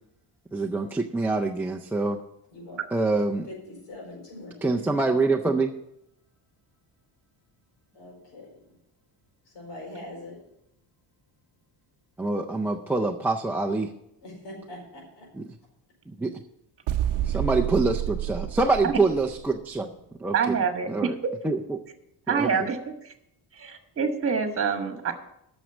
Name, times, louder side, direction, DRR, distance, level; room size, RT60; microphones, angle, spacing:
voice 1, 0.5-2.2 2.9-3.5 4.6-5.7 12.2-13.9 15.4-15.5 16.1-16.3 17.3-19.9 20.2-20.5 20.9-21.1 21.4-21.8 22.3-22.5, right 3 dB, 5° right, -1 dB, 0.4 m, -25 dB
voice 2, 2.5-2.8 3.5-4.9 7.9-8.7 9.5-10.4 14.2-15.3, left 1 dB, 80° left, -1 dB, 4.7 m, -42 dB
sound 1, 16.9-19.6, right 12 dB, 85° right, 0.6 m, -29 dB
voice 3, 20.3-21.1 22.3-23.1 23.5-25.1, right 6 dB, 30° right, 6 dB, 1.4 m, -26 dB
9.1 x 6.4 x 8.0 m, 0.79 s
cardioid pair, 155°, 41 cm